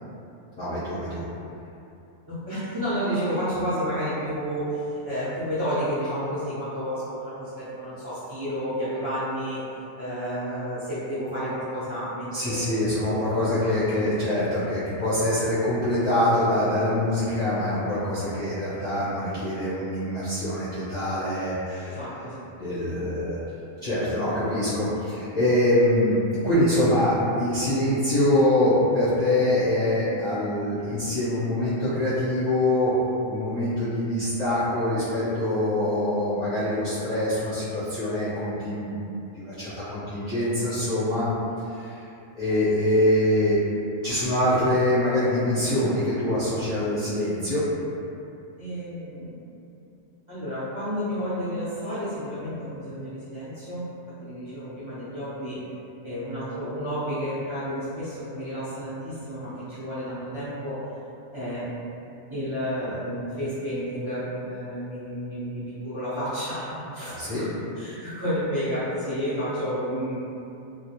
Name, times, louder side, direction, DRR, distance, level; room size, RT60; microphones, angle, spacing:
voice 1, 0.6-1.2 12.3-22.0 22.6-23.4 23.8-32.9 33.3-39.0 39.3-41.3 41.8-41.9 42.4-43.6 44.0-47.6 67.1-67.5, left 1 dB, 45° left, -14 dB, 0.6 m, -24 dB
voice 2, 2.3-9.6 10.0-13.8 21.8-22.5 48.6-49.3 50.3-53.9 54.2-55.6 56.0-60.8 61.3-61.7 62.3-70.2, equal, 30° right, -14 dB, 0.6 m, -31 dB
2.3 x 2.0 x 2.8 m, 2.7 s
omnidirectional pair, 1.3 m